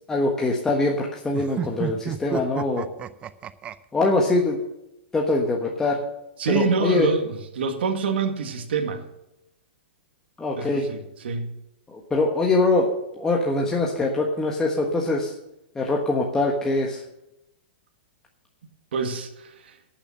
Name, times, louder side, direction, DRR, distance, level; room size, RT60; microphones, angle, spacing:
voice 1, 0.1-2.9 3.9-4.6 5.1-6.0 6.5-7.1 10.4-10.9 11.9-12.9 13.1-15.3 15.7-17.0, left 2 dB, 10° left, -1 dB, 1.3 m, -23 dB
sound 1, 1.3-3.7, right 9 dB, 20° right, 0.6 m, -31 dB
voice 2, 6.4-9.0 10.6-11.5 18.9-19.8, right 5 dB, 75° right, 5 dB, 1.9 m, -26 dB
12.0 x 7.1 x 7.6 m, 0.89 s
hypercardioid pair, 150°, 6 cm